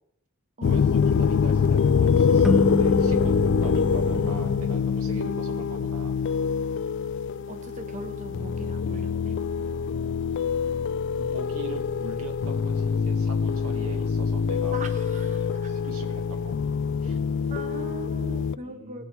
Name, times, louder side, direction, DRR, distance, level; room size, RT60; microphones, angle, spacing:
sound 1, 0.6-18.5, left 6 dB, 55° left, 0.3 m, -25 dB
voice 1, 0.6-6.2 8.9-9.1 11.2-14.8 15.7-16.7 17.0-17.2 18.6-19.1, right 2 dB, 90° right, 3 dB, 1.9 m, -41 dB
sound 2, 2.4-5.6, equal, ahead, 0.5 m, -29 dB
voice 2, 7.5-9.4 14.7-15.7 17.5-19.1, right 2 dB, 35° right, 5 dB, 0.9 m, -40 dB
17.5 x 7.0 x 4.7 m, 0.74 s
head